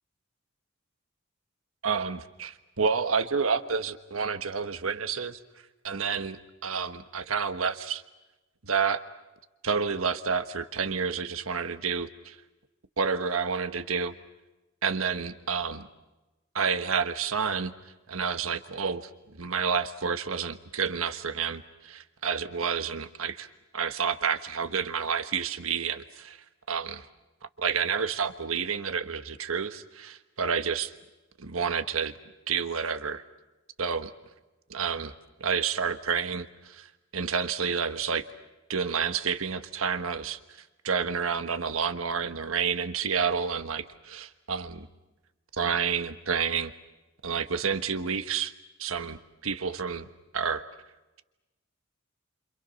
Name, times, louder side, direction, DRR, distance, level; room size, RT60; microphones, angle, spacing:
voice 1, 1.8-5.4 5.8-8.0 8.6-9.0 9.6-12.4 13.0-14.1 14.8-15.9 16.5-17.7 18.1-23.5 23.7-27.1 27.6-30.9 31.4-32.1 32.5-33.2 33.8-34.1 34.7-35.1 35.4-38.2 38.7-40.4 40.8-44.9 45.5-46.7 47.2-48.5 48.8-50.6, right 6 dB, 80° right, 9 dB, 1.4 m, -29 dB
29.5 x 27.5 x 5.8 m, 1.1 s
head